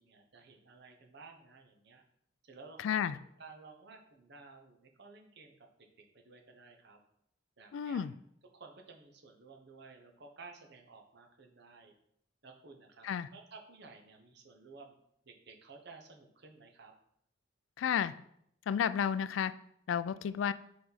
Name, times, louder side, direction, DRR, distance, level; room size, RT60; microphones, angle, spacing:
voice 1, 0.0-2.0 2.4-3.0 3.4-5.7 6.0-7.0 7.6-8.0 8.5-11.9 12.4-13.1 13.3-15.0 15.2-16.9, right 4 dB, 65° right, 4 dB, 0.9 m, -54 dB
voice 2, 2.8-3.2 7.7-8.1 13.0-13.3 17.8-18.1 18.7-19.5 19.9-20.5, left 8 dB, 85° left, 15 dB, 0.3 m, -32 dB
5.0 x 4.8 x 4.1 m, 0.71 s
head